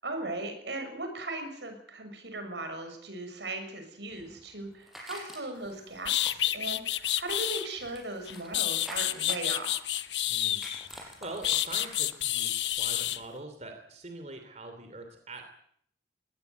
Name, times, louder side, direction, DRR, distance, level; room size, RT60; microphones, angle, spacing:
voice 1, 0.0-9.8, right 2 dB, 80° right, 6 dB, 6.5 m, -38 dB
sound 1, 4.1-5.7 6.2-8.5 8.8-10.2 10.6-12.4 12.7-12.8, equal, ahead, 6.1 m, -46 dB
sound 2, 5.6-5.7 6.0-7.7 8.3-10.9 11.4-13.2, left 13 dB, 90° left, 1.0 m, -29 dB
voice 2, 10.3-15.4, right 2 dB, 40° right, 5 dB, 3.0 m, -44 dB
21.5 x 19.0 x 8.2 m, 0.67 s
head